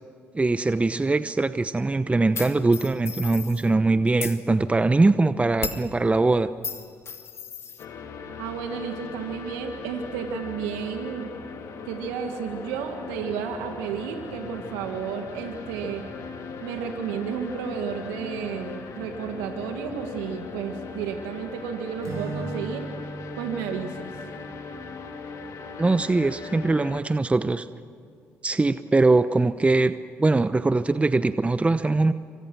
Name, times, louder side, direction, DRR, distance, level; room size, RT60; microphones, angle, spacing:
voice 1, 0.3-6.5 25.8-27.7 28.4-29.9 30.2-32.1, right 3 dB, 20° right, 12 dB, 0.9 m, -22 dB
sound 1, 2.3-3.7 4.1-4.4 5.6-5.9 6.6-7.8, left 5 dB, 50° left, 2.7 m, -34 dB
sound 2, 7.8-27.0, left 5 dB, 65° left, 3.3 m, -39 dB
voice 2, 8.4-11.3 11.8-16.0 16.6-22.9 23.4-24.2, right 7 dB, 85° right, 4 dB, 1.8 m, -32 dB
Acoustic guitar / Strum, 22.0-25.9, right 3 dB, 60° right, 7.4 m, -38 dB
28.5 x 25.5 x 6.2 m, 2.4 s
hypercardioid pair, 55°, 6 cm